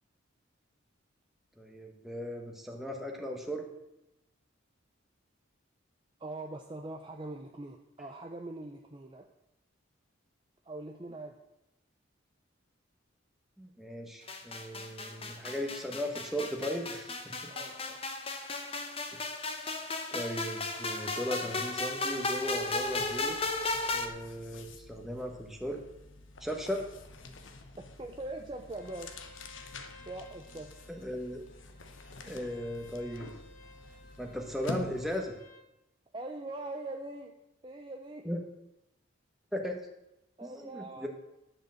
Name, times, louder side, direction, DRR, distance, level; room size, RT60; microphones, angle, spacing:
voice 1, 1.6-3.7 13.6-17.3 20.1-23.4 23.9-25.8 26.4-26.8 30.9-31.4 32.2-33.3 34.2-35.4 38.2-38.4 39.5-39.9 40.4-41.1, equal, ahead, 1 dB, 1.3 m, -37 dB
voice 2, 6.2-9.3 10.7-11.4 17.5-18.0 28.0-29.1 30.1-30.8 36.1-37.3 37.6-38.3 40.4-41.1, right 2 dB, 25° right, 3 dB, 0.6 m, -42 dB
sound 1, 14.3-24.1, left 2 dB, 30° left, 0.8 m, -35 dB
sound 2, 22.1-35.4, left 2 dB, 70° left, 1.0 m, -48 dB
Bowed string instrument, 28.7-35.6, left 2 dB, 45° left, 1.8 m, -57 dB
11.0 x 5.0 x 7.6 m, 0.89 s
head